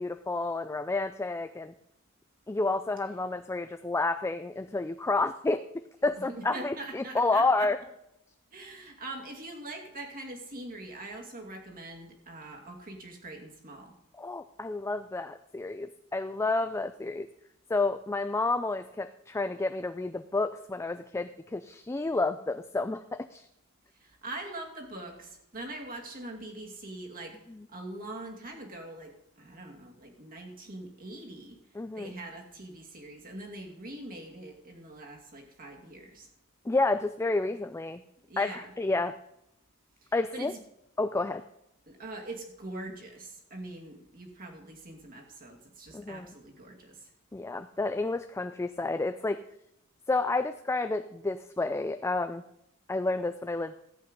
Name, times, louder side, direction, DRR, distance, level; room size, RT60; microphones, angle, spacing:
voice 1, 0.0-1.7 2.5-5.7 6.0-7.8 14.2-17.3 17.7-23.5 27.5-27.7 31.7-32.1 36.7-38.0 38.4-39.1 40.1-40.5 41.0-41.4 45.9-46.3 47.3-49.4 50.1-52.4 52.9-53.7, left 3 dB, 15° left, 9 dB, 0.3 m, -30 dB
voice 2, 6.3-7.7 8.5-13.9 24.0-27.4 27.7-31.6 31.9-36.3 38.3-38.7 40.3-40.6 41.9-47.0, right 2 dB, 40° right, 1 dB, 2.4 m, -43 dB
14.0 x 8.1 x 5.3 m, 0.82 s
head